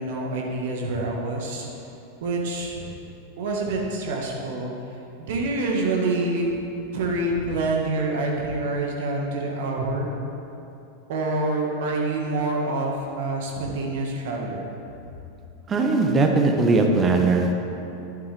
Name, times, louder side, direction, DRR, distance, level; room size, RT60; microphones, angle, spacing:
voice 1, 0.0-1.7 2.2-2.9 3.4-4.7 5.2-6.5 6.9-10.1 11.1-14.6, right 2 dB, 60° right, 0 dB, 1.8 m, -26 dB
voice 2, 15.7-17.5, right 3 dB, 25° right, 3 dB, 1.2 m, -19 dB
11.0 x 10.0 x 3.6 m, 2.8 s
figure-of-eight pair, 90°, 0 cm